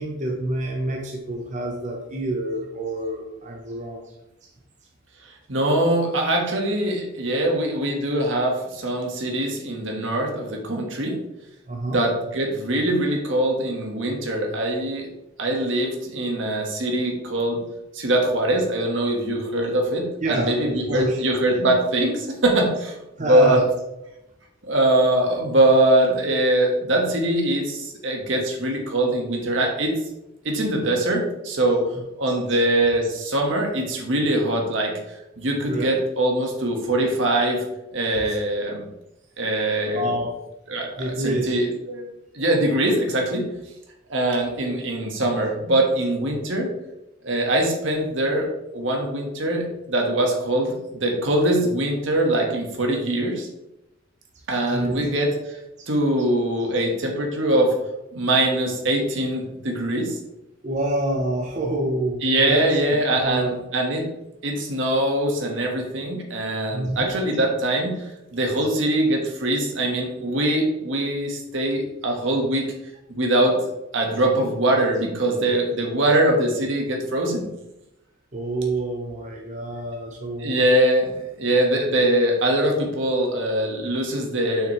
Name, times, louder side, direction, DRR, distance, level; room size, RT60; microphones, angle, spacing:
voice 1, 0.0-4.1 11.7-12.1 20.2-21.2 23.2-23.6 35.7-35.9 38.3-38.4 39.9-40.3 41.0-41.6 54.5-55.1 60.6-62.2 62.5-62.7 63.1-63.6 66.7-67.2 78.3-80.6, right 1 dB, 40° right, 0 dB, 0.9 m, -27 dB
voice 2, 5.5-11.2 11.9-15.1 15.4-17.6 17.9-23.0 23.3-23.6 24.6-29.9 30.4-31.8 32.2-35.0 35.4-37.6 37.9-38.8 39.4-40.1 40.7-43.5 44.1-46.7 47.2-48.5 48.7-53.5 54.5-55.6 55.9-57.7 58.1-60.2 62.2-64.1 64.4-68.0 68.3-72.6 73.1-73.6 73.9-77.5 80.4-84.7, right 1 dB, 75° right, 1 dB, 1.5 m, -22 dB
6.5 x 6.0 x 3.1 m, 0.91 s
head